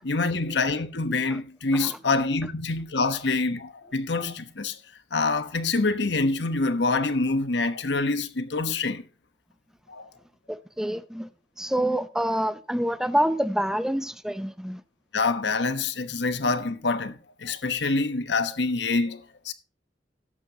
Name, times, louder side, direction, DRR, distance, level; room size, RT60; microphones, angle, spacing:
voice 1, 0.0-4.8 5.1-9.0 9.9-10.1 15.1-19.5, left 3 dB, 75° left, 1.1 m, -26 dB
voice 2, 10.5-11.3 11.6-14.8, right 1 dB, 5° right, 0.7 m, -27 dB
18.0 x 7.5 x 2.8 m
head